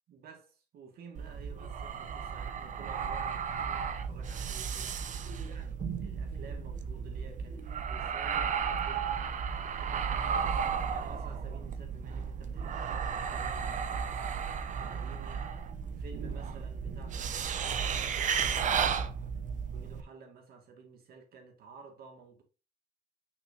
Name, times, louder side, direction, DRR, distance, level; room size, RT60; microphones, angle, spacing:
voice 1, 0.1-5.0 5.4-10.3 10.9-15.5 15.9-18.7 19.7-22.4, right 5 dB, 65° right, 2.3 m, -53 dB
sound 1, 1.1-20.0, right 6 dB, 45° right, 0.8 m, -34 dB
6.0 x 5.9 x 2.9 m
cardioid pair, 110°, 17 cm